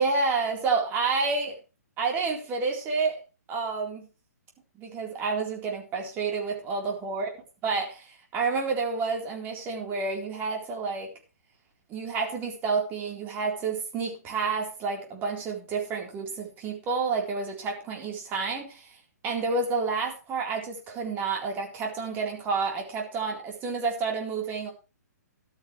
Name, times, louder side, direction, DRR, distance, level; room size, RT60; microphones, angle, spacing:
voice 1, 0.0-1.6 2.0-3.2 3.5-4.1 4.8-7.3 7.6-11.1 11.9-19.0 19.2-24.7, right 4 dB, 20° right, 1 dB, 4.0 m, -29 dB
14.0 x 12.0 x 3.3 m, 0.32 s
hypercardioid pair, 150°, 9 cm